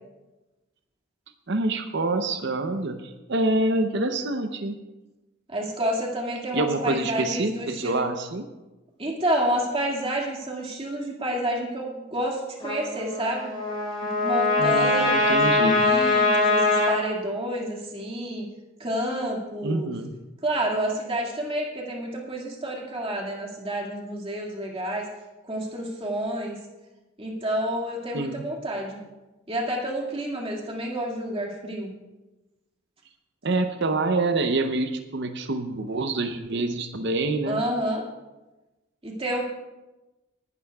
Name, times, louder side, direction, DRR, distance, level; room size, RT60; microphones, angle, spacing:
voice 1, 1.5-4.8 6.5-8.5 14.6-15.8 19.6-20.1 28.1-28.4 33.4-37.6, right 2 dB, 55° right, 6 dB, 0.7 m, -26 dB
voice 2, 5.5-8.1 9.0-13.5 14.2-18.5 18.8-19.9 20.4-25.1 25.4-26.6 27.2-29.0 29.5-31.9 37.5-38.0 39.0-39.4, right 1 dB, 25° right, -2 dB, 2.0 m, -29 dB
Trumpet, 12.6-17.0, left 2 dB, 25° left, 3.9 m, -22 dB
20.0 x 12.0 x 2.3 m, 1.1 s
head